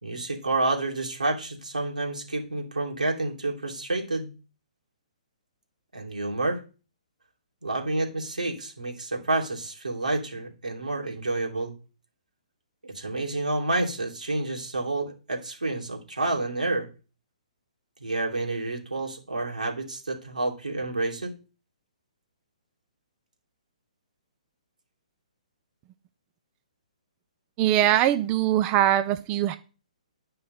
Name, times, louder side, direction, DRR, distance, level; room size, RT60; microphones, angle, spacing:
voice 1, 0.0-4.3 5.9-6.6 7.6-11.7 12.8-16.9 18.0-21.3, right 2 dB, 90° right, 0 dB, 3.3 m, -29 dB
voice 2, 27.6-29.6, right 12 dB, 25° right, 11 dB, 0.5 m, -22 dB
10.5 x 5.6 x 5.6 m, 0.34 s
figure-of-eight pair, 130°, 4 cm